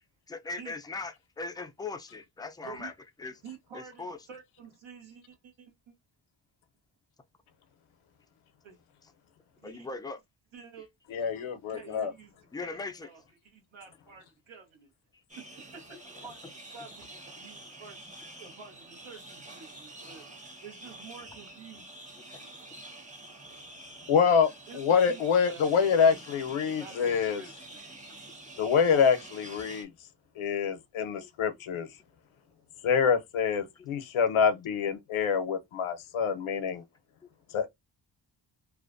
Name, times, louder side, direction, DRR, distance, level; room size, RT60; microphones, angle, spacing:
voice 1, 0.3-2.9 3.2-3.4 3.7-4.2 9.0-9.1 9.6-10.2 12.5-13.1 15.9-16.3 31.2-31.3 37.2-37.3, left 3 dB, 10° left, 0.3 m, -39 dB
voice 2, 2.6-2.9 3.4-5.9 8.6-8.8 9.6-9.9 10.5-10.9 11.2-11.4 11.7-12.7 13.0-13.2 13.5-14.9 15.4-15.5 15.7-16.4 16.7-18.0 18.4-20.2 20.6-21.9 24.7-25.2 25.5-25.6 26.0-26.2 26.8-27.5, right 6 dB, 65° right, 1.0 m, -49 dB
voice 3, 11.1-12.1 24.1-27.4 28.6-29.9 30.4-31.9 32.8-36.8 37.5-37.7, left 6 dB, 75° left, 0.7 m, -26 dB
sound 1, 15.3-29.8, right 2 dB, 15° right, 0.9 m, -48 dB
2.4 x 2.1 x 2.4 m
cardioid pair, 65°, 49 cm